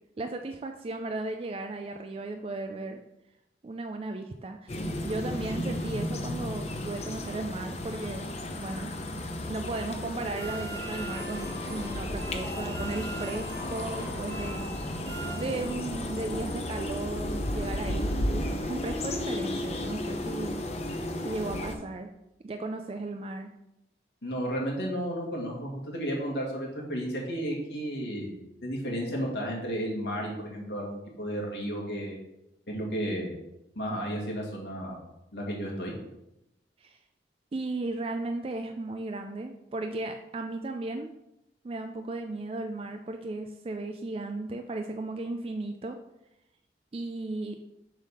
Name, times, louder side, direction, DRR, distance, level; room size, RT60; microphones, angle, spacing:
voice 1, 0.2-3.0 3.6-4.8 5.0-8.9 9.5-14.8 15.4-20.6 21.2-22.1 22.4-23.5 36.8-37.0 37.5-41.1 41.6-46.0 46.9-47.6, right 2 dB, 30° right, 5 dB, 0.3 m, -35 dB
sound 1, 4.7-21.8, left 1 dB, 35° left, 0.7 m, -34 dB
sound 2, 10.4-16.1, right 1 dB, 75° right, 1.8 m, -41 dB
voice 2, 24.2-32.2 32.7-33.3 33.8-35.0 35.3-36.0, equal, 75° left, -2 dB, 1.9 m, -33 dB
7.2 x 3.5 x 5.5 m, 0.88 s
head